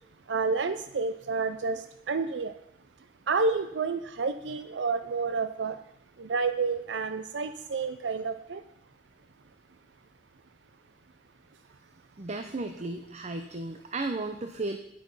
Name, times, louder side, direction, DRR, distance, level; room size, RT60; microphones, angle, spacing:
voice 1, 0.3-1.8 2.1-2.5 3.3-5.8 6.2-8.6, right 4 dB, 85° right, 10 dB, 0.5 m, -29 dB
voice 2, 12.2-14.8, right 2 dB, 40° right, 7 dB, 0.7 m, -34 dB
10.5 x 8.8 x 5.6 m, 0.80 s
head